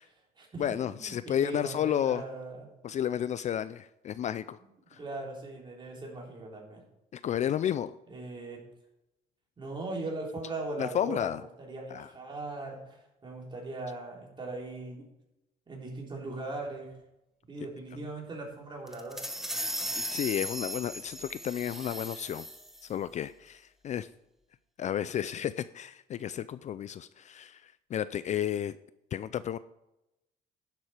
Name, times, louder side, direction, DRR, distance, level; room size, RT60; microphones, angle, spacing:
voice 1, 0.0-2.7 4.9-6.8 8.1-8.6 9.6-15.1 15.7-16.9 17.5-19.3, right 2 dB, 30° right, -1 dB, 3.7 m, -39 dB
voice 2, 0.6-2.2 2.8-4.6 4.9-5.0 7.1-7.9 10.8-11.4 11.9-12.1 20.1-22.4 22.8-24.1 24.8-28.8 29.1-29.6, left 10 dB, 45° left, 15 dB, 0.4 m, -32 dB
sound 1, 18.9-22.9, equal, ahead, 1.1 m, -37 dB
11.0 x 7.5 x 4.9 m, 0.91 s
cardioid pair, 110°, 17 cm